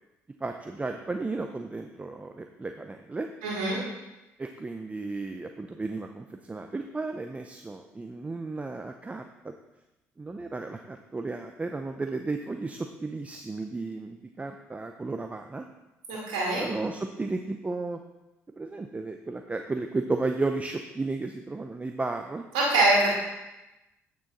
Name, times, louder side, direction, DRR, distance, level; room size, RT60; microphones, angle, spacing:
voice 1, 0.4-3.3 4.4-9.5 10.2-15.6 16.5-18.0 18.6-22.4, right 3 dB, 20° right, 5 dB, 0.6 m, -34 dB
voice 2, 3.4-3.8 16.1-16.7 22.5-23.1, right 2 dB, 90° right, -6 dB, 2.3 m, -24 dB
8.6 x 6.3 x 4.1 m, 1.0 s
supercardioid pair, 65°, 6 cm